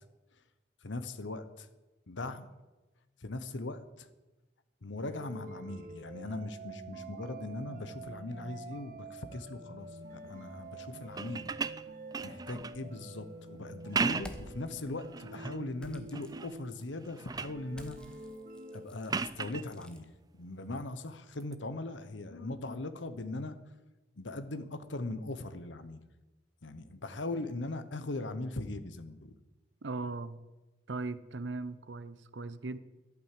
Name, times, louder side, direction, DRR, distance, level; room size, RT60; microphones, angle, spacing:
voice 1, 0.8-1.7 2.1-2.5 3.2-4.1 4.8-11.5 12.2-18.0 18.7-20.1 20.3-23.6 24.2-26.0 26.6-29.4, left 2 dB, 85° left, 11 dB, 1.0 m, -40 dB
sound 1, 5.0-17.0 17.5-18.9, right 2 dB, 45° right, 1.0 m, -48 dB
sound 2, 11.1-12.8 13.7-14.5 15.0-15.6 16.1-16.6 16.9-17.6 19.1-19.7 21.4-21.5, right 4 dB, 20° right, 0.3 m, -36 dB
sound 3, 14.2-14.8 15.8-16.9 17.7-20.0, equal, 5° left, 1.0 m, -52 dB
voice 2, 29.8-30.4 30.9-32.8, right 3 dB, 75° right, 14 dB, 0.7 m, -38 dB
11.5 x 8.9 x 7.5 m, 1.1 s
head